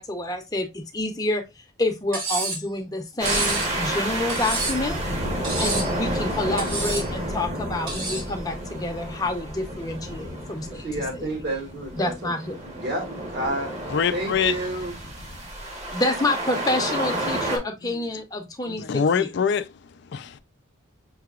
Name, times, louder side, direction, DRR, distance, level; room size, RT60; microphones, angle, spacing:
voice 1, 0.0-5.0 5.6-10.8 11.1-11.3 12.0-12.6 15.9-19.3, left 2 dB, 20° left, 0.7 m, -28 dB
Cutlery silverware, 2.1-2.7 3.3-3.7 4.3-4.9 5.4-5.9 6.6-7.1 7.9-8.3, right 2 dB, 80° right, 2.1 m, -29 dB
sound 1, 3.2-17.6, right 1 dB, 35° right, 1.1 m, -30 dB
voice 2, 10.6-12.3 12.6-13.0 13.3-13.7 14.1-14.9, right 1 dB, 55° right, 1.6 m, -30 dB
voice 3, 13.9-14.5 17.8-18.0 18.7-20.4, left 6 dB, 55° left, 0.3 m, -25 dB
5.7 x 2.9 x 2.3 m
head